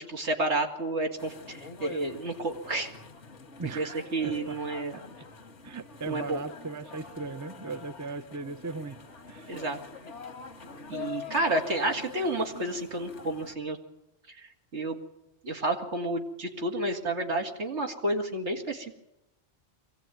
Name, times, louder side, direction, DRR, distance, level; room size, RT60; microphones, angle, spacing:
voice 1, 0.1-2.9 3.7-5.0 6.1-6.4 9.5-9.8 10.9-13.8 14.3-15.0 15.4-19.0, right 2 dB, 75° right, 3 dB, 2.7 m, -30 dB
sound 1, 1.2-13.5, left 5 dB, 80° left, 1.8 m, -45 dB
voice 2, 3.6-4.6 4.9-5.0 5.6-9.0 9.3-9.6, right 4 dB, 20° right, 10 dB, 0.7 m, -38 dB
23.5 x 16.5 x 9.3 m, 0.90 s
omnidirectional pair, 1.2 m